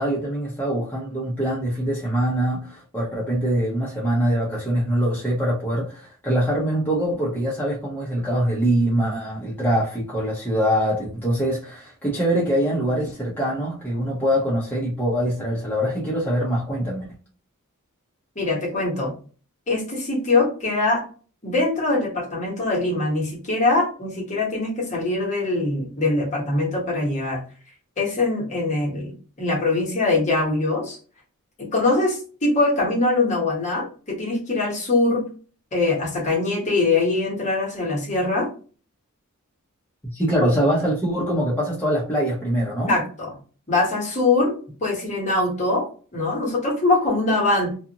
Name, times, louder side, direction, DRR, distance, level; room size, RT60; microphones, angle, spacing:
voice 1, 0.0-17.1 40.1-42.9, equal, 10° left, -6 dB, 0.7 m, -23 dB
voice 2, 18.3-19.1 19.7-21.0 21.4-27.4 28.0-29.1 29.4-31.0 31.6-35.3 35.7-38.5 42.9-43.3 43.7-44.6 44.8-47.7, left 2 dB, 35° left, -2 dB, 1.1 m, -22 dB
2.5 x 2.5 x 2.8 m, 0.39 s
head